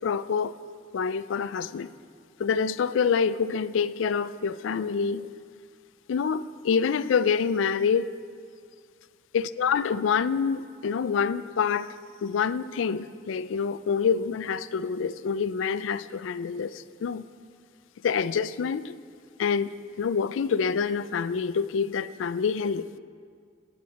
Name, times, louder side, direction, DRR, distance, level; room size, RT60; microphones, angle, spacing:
voice 1, 0.0-0.5 0.9-1.9 2.4-5.3 6.1-8.1 9.3-11.9 12.2-17.2 18.0-19.0 19.4-22.9, left 6 dB, 80° left, 0.4 m, -26 dB
15.5 x 9.4 x 4.2 m
head